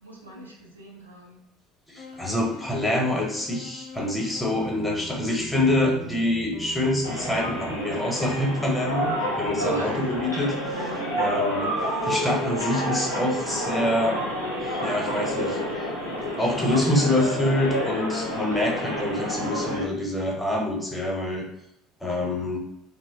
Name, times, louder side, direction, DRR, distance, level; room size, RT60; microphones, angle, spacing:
voice 1, 0.0-1.4 9.6-10.1 10.9-11.2 18.5-18.6, right 2 dB, 85° right, -2 dB, 0.4 m, -35 dB
voice 2, 1.9-9.1 9.4-14.2 14.8-15.9 16.4-21.5 22.0-22.6, left 1 dB, 5° left, -2 dB, 0.8 m, -26 dB
sound 1, 2.0-4.9, left 5 dB, 50° left, 0.5 m, -43 dB
sound 2, 4.5-10.4, right 5 dB, 20° right, 0.6 m, -42 dB
sound 3, 7.0-19.8, equal, 90° left, 0.7 m, -29 dB
2.9 x 2.0 x 2.8 m, 0.77 s
figure-of-eight pair, 60°, 0 cm